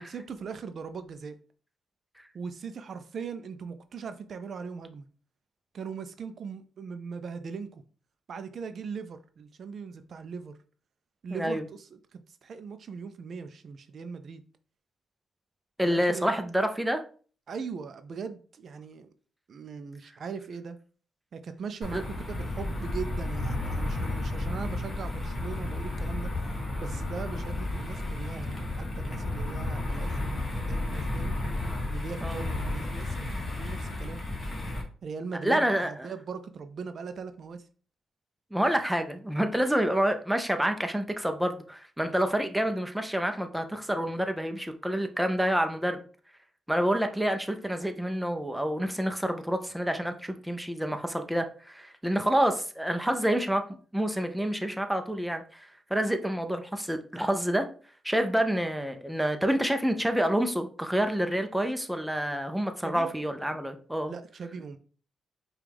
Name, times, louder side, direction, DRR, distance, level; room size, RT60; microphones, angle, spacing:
voice 1, 0.0-1.4 2.3-5.1 5.7-7.8 8.3-10.5 11.2-14.4 15.8-16.3 17.5-19.1 19.5-20.8 21.3-26.3 26.8-31.4 31.9-34.2 35.0-37.7 62.8-63.1 64.1-64.8, right 5 dB, 55° right, 0.4 m, -40 dB
voice 2, 11.3-11.6 15.8-17.0 21.9-22.0 32.2-32.4 35.4-36.1 38.5-46.0 46.7-53.6 53.9-57.7 58.0-64.1, equal, 5° right, 0.5 m, -28 dB
sound 1, 21.8-34.8, left 2 dB, 30° left, 1.3 m, -32 dB
4.9 x 2.3 x 3.4 m
cardioid pair, 100°, 0 cm